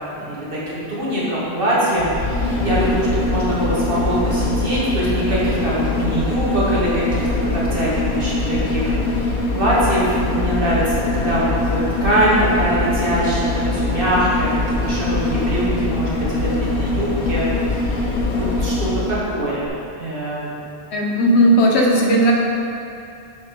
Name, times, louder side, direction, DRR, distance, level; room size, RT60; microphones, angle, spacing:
voice 1, 0.2-20.5, right 1 dB, 55° right, -8 dB, 2.1 m, -23 dB
sound 1, 1.9-19.3 19.6-19.7, left 2 dB, 50° left, 1.0 m, -22 dB
voice 2, 20.9-22.3, equal, 80° left, -1 dB, 1.3 m, -15 dB
6.9 x 5.2 x 5.2 m, 2.7 s
omnidirectional pair, 1.1 m